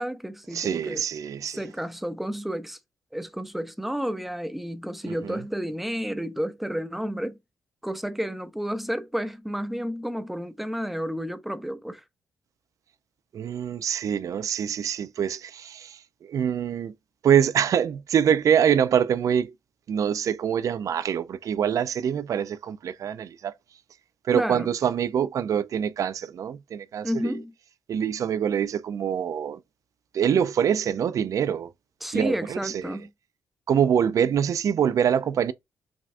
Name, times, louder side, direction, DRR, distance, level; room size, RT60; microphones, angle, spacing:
voice 1, 0.0-1.0 1.5-2.8 3.1-7.4 7.8-12.0 24.3-24.7 27.0-27.5 32.0-33.1, equal, 5° right, 0.5 m, -31 dB
voice 2, 0.5-1.6 5.1-5.4 13.3-16.9 17.2-19.5 19.9-23.5 24.2-27.3 27.9-29.6 30.1-31.7 32.1-33.0 33.7-35.5, right 8 dB, 60° right, 0.4 m, -25 dB
5.9 x 2.3 x 2.5 m
cardioid pair, 110°, 6 cm